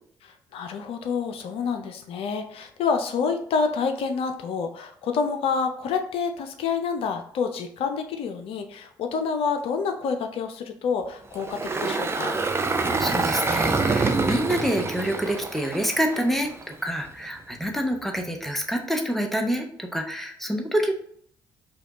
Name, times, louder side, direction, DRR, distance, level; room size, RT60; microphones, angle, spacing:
voice 1, 0.5-12.4, left 5 dB, 60° left, 6 dB, 0.5 m, -28 dB
Engine, 11.3-16.6, right 3 dB, 25° right, 0.5 m, -26 dB
voice 2, 13.0-20.9, equal, ahead, 3 dB, 0.8 m, -27 dB
4.8 x 2.3 x 3.0 m, 0.63 s
hypercardioid pair, 45°, 11 cm